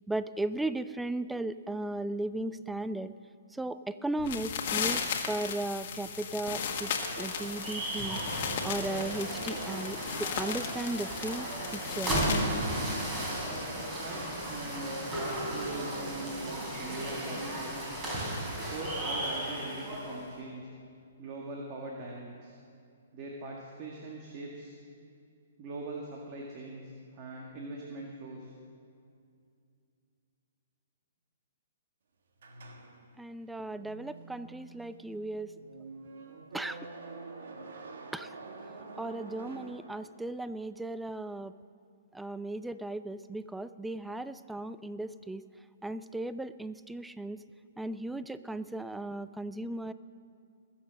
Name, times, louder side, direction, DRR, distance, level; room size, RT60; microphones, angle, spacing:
voice 1, 0.1-3.1 3.5-12.1 33.2-35.5 36.5-36.8 38.1-38.3 39.0-41.5 42.1-45.4 45.8-47.4 47.8-49.9, right 2 dB, 5° right, 14 dB, 0.4 m, -36 dB
sound 1, 4.2-12.5, left 7 dB, 50° left, 1.6 m, -36 dB
sound 2, 6.2-20.3, right 1 dB, 25° right, 4.5 m, -35 dB
voice 2, 13.9-17.9 18.6-20.7 21.2-22.5 23.1-24.8 25.6-28.5, right 2 dB, 40° right, -2 dB, 1.9 m, -42 dB
sound 3, 32.4-40.5, right 3 dB, 65° right, 1.5 m, -47 dB
21.0 x 7.4 x 6.5 m, 2.4 s
hypercardioid pair, 135°, 0 cm